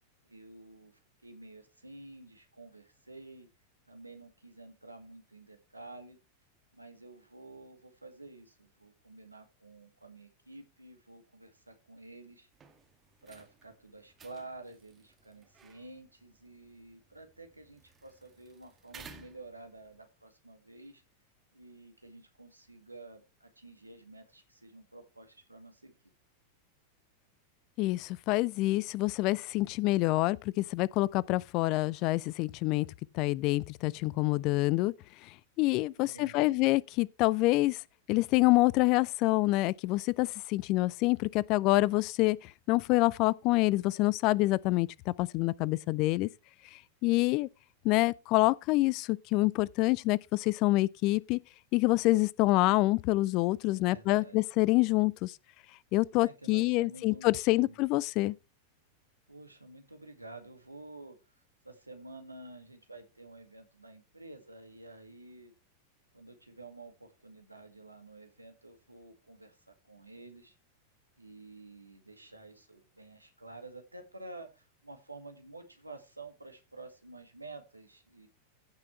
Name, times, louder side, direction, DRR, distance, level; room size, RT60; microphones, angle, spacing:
voice 1, 0.2-3.5 3.9-6.2 6.7-12.5 13.2-21.0 21.5-25.9 36.0-36.6 53.7-54.4 56.1-57.8 59.3-61.4 61.6-65.5 66.1-70.6 71.2-78.3, right 2 dB, 85° right, 2.0 m, -50 dB
sound 1, 12.5-20.0, right 5 dB, 20° right, 1.7 m, -57 dB
voice 2, 27.8-32.9 33.1-34.9 35.2-37.8 38.1-46.3 46.7-47.5 47.8-51.4 51.7-55.4 55.9-58.4, left 20 dB, 40° left, 0.4 m, -27 dB
15.5 x 6.0 x 3.2 m
figure-of-eight pair, 90°, 0 cm